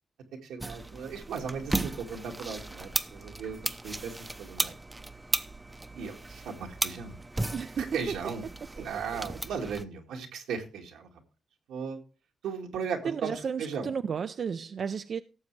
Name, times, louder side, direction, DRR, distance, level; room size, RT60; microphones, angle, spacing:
voice 1, 0.4-4.7 5.9-7.2 7.8-8.5 8.7-11.1 11.7-12.0 12.4-13.9, right 6 dB, 90° right, 1.9 m, -37 dB
sound 1, 0.6-9.8, right 2 dB, 15° right, 0.7 m, -35 dB
voice 2, 7.5-8.2 13.0-15.2, right 6 dB, 60° right, 0.5 m, -33 dB
17.5 x 7.1 x 3.3 m
cardioid pair, 70°, 0 cm